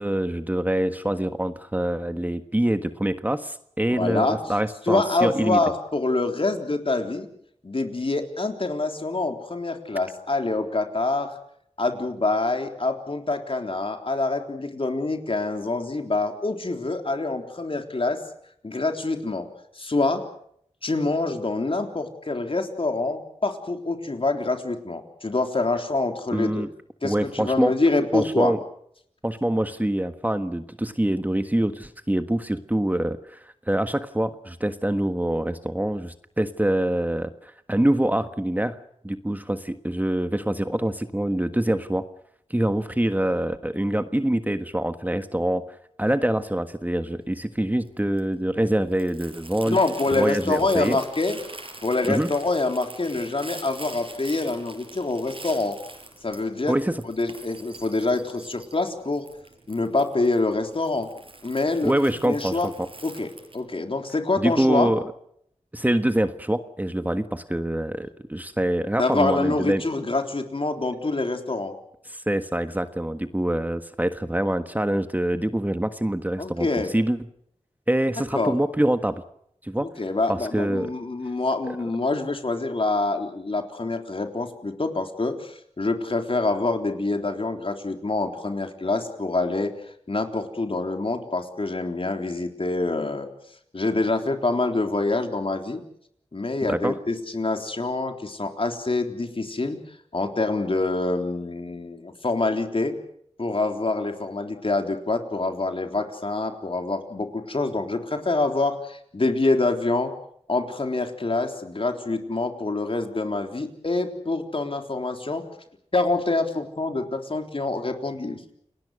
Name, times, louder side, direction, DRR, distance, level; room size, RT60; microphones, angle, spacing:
voice 1, 0.0-5.6 26.3-26.7 27.0-27.7 28.1-28.6 29.2-42.1 42.5-45.6 46.0-49.8 50.1-51.0 52.1-52.3 56.7-57.0 61.8-62.9 64.4-65.0 65.7-69.8 72.1-76.7 76.9-77.2 77.9-79.2 79.6-79.9 80.3-80.9 96.7-96.9, right 1 dB, 15° right, 9 dB, 1.4 m, -25 dB
voice 2, 3.9-4.4 4.8-7.3 7.6-11.4 11.8-18.2 18.6-19.5 19.7-20.2 20.8-26.7 27.0-28.5 49.7-51.4 51.8-55.8 56.2-56.8 57.0-59.2 59.7-61.1 61.4-62.7 63.0-64.9 69.0-71.8 76.4-76.9 78.3-78.5 79.8-93.3 93.7-95.8 96.3-103.0 103.4-110.1 110.5-115.4 115.9-118.4, left 2 dB, 50° left, 5 dB, 3.8 m, -26 dB
Crumpling crinkling, 47.2-63.6, right 2 dB, 50° right, 6.0 m, -44 dB
29.5 x 20.0 x 6.5 m, 0.69 s
wide cardioid pair, 60°, 12 cm